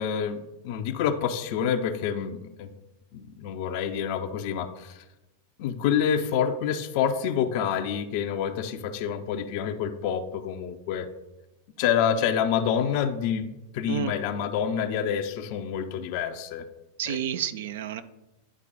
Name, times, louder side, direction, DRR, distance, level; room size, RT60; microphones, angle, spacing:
voice 1, 0.0-2.7 3.1-5.0 5.6-11.1 11.8-13.5 13.7-16.6 17.1-17.2, left 8 dB, 45° left, 7 dB, 0.5 m, -27 dB
voice 2, 17.0-18.0, right 9 dB, 55° right, 11 dB, 0.4 m, -30 dB
9.9 x 4.5 x 4.0 m, 0.97 s
figure-of-eight pair, 90°, 0 cm